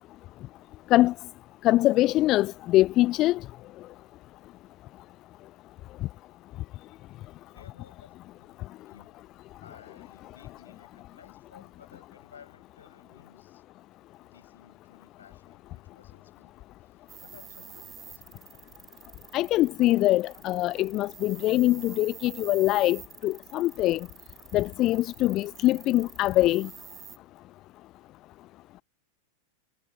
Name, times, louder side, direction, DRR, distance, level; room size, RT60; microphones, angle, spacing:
voice 1, 1.6-3.4 19.3-24.0 24.5-26.7, left 16 dB, 35° left, 0.5 m, -23 dB
voice 2, 7.5-9.2 9.6-13.6 14.2-18.6, left 7 dB, 70° left, 7.4 m, -56 dB
sound 1, 17.1-27.2, right 9 dB, 25° right, 1.6 m, -48 dB
figure-of-eight pair, 90°, 0 cm